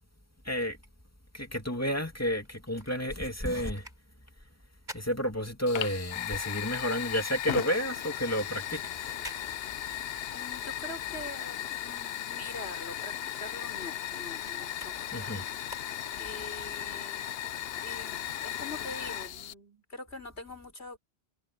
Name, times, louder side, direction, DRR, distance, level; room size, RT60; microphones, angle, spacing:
voice 1, 0.5-0.8 1.3-3.8 4.9-9.2 15.1-15.5, equal, 15° left, 2.5 m, -31 dB
sound 1, 2.5-6.1 6.4-12.4 12.7-16.5 17.0-17.1, right 1 dB, 45° right, 8.0 m, -52 dB
Fire, 5.7-19.5, left 11 dB, 70° left, 0.9 m, -36 dB
voice 2, 10.3-13.2 13.4-15.3 16.2-17.4 17.8-21.0, left 2 dB, 90° left, 5.1 m, -44 dB
omnidirectional pair, 1.1 m